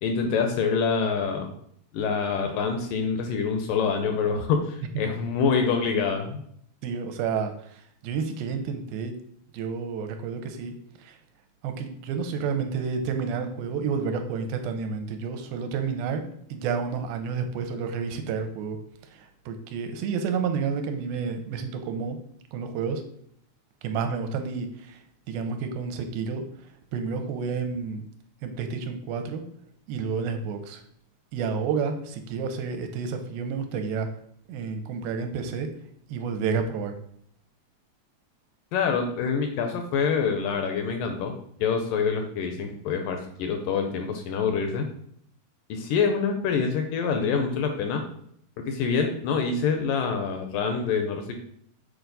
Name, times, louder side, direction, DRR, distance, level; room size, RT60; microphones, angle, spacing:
voice 1, 0.0-1.5 1.9-6.4 38.7-41.3 41.6-44.9 45.7-48.0 48.7-51.3, left 5 dB, 80° left, 5 dB, 2.1 m, -26 dB
voice 2, 6.8-7.5 8.0-9.1 9.5-10.7 11.0-11.2 11.6-16.2 16.5-18.8 19.1-22.2 22.5-23.0 23.8-25.0 25.3-26.4 26.9-28.0 28.4-29.4 29.9-30.8 31.3-34.1 34.5-35.7 36.1-36.9, right 5 dB, 85° right, 6 dB, 2.4 m, -30 dB
7.1 x 4.5 x 3.9 m, 0.66 s
omnidirectional pair, 4.3 m